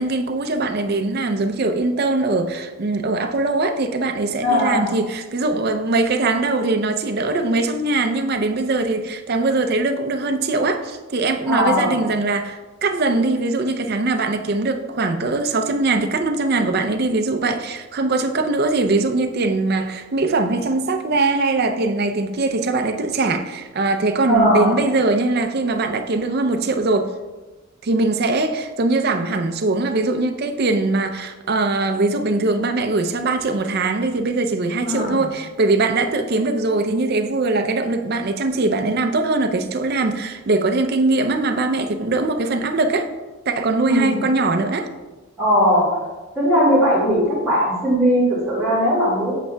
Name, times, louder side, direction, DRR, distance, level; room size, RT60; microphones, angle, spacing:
voice 1, 0.0-27.1 27.8-43.1 43.5-44.9, right 3 dB, 45° right, 0.5 m, -21 dB
voice 2, 4.4-4.9 11.5-12.0 24.3-24.8 34.8-35.2 43.8-44.2 45.4-45.9 46.4-49.3, equal, 10° right, 1.8 m, -18 dB
8.1 x 7.2 x 2.2 m
head